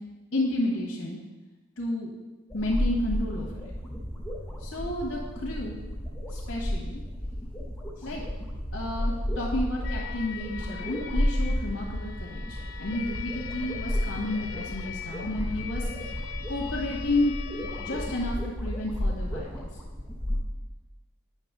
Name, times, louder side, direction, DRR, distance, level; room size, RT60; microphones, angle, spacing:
voice 1, 0.3-1.2 1.8-2.1 2.5-3.7 4.6-5.8 6.3-7.0 8.0-8.2 8.7-16.1 16.5-17.3 17.8-19.7, left 1 dB, 65° left, -3 dB, 1.4 m, -31 dB
sound 1, 2.5-20.4, equal, 5° left, 0.9 m, -32 dB
sound 2, 9.8-18.4, left 7 dB, 85° left, 0.5 m, -41 dB
8.9 x 6.0 x 3.6 m, 1.2 s
head